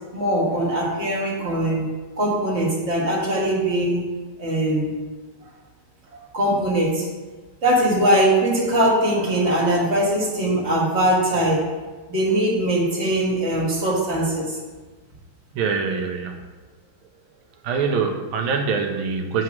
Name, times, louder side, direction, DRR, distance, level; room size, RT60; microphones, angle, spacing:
voice 1, 0.1-1.9 2.2-4.0 4.4-4.9 6.3-7.0 7.6-11.6 12.1-14.6, right 1 dB, 35° right, -4 dB, 1.5 m, -21 dB
voice 2, 15.5-16.4 17.6-19.4, right 5 dB, 85° right, 4 dB, 1.4 m, -24 dB
7.3 x 2.9 x 5.9 m, 1.3 s
omnidirectional pair, 2.2 m